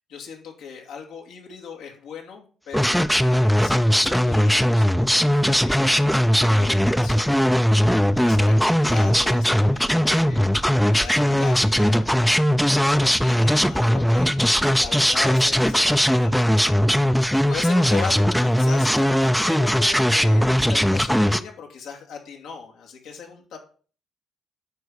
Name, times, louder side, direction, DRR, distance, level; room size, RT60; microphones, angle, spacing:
voice 1, 0.1-7.5 8.1-10.5 10.8-16.7 17.3-23.6, left 6 dB, 85° left, 1 dB, 2.5 m, -38 dB
sound 1, 2.7-21.4, equal, ahead, 0.6 m, -19 dB
9.7 x 4.1 x 6.4 m, 0.41 s
cardioid pair, 90°, 0 cm